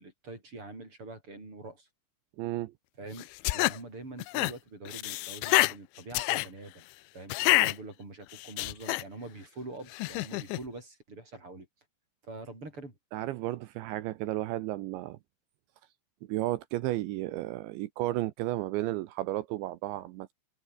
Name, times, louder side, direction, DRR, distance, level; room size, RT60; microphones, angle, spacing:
voice 1, 0.0-1.9 3.0-6.8 7.1-11.7 12.2-12.9, right 2 dB, 25° right, 8.3 m, -44 dB
voice 2, 2.4-2.7 13.1-15.2 16.3-20.3, right 16 dB, 75° right, 3.0 m, -33 dB
sound 1, 3.2-3.8 4.2-4.5 4.9-5.7 6.1-6.5 7.3-7.7 8.3-9.0 9.9-10.6, left 22 dB, 80° left, 2.8 m, -27 dB
omnidirectional pair, 5.7 m